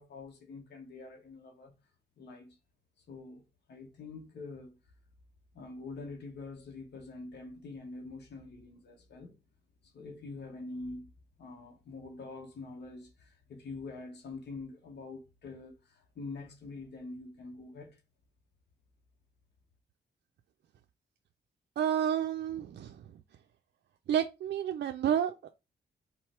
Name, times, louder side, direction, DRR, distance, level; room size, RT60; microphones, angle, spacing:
voice 1, 0.0-1.8 2.2-2.6 3.1-4.8 5.5-9.3 9.8-11.1 11.4-18.0, left 3 dB, 75° left, 1.2 m, -45 dB
voice 2, 21.8-23.0 24.1-25.5, right 9 dB, 75° right, 0.4 m, -30 dB
3.8 x 3.1 x 4.4 m
cardioid pair, 80°, 18 cm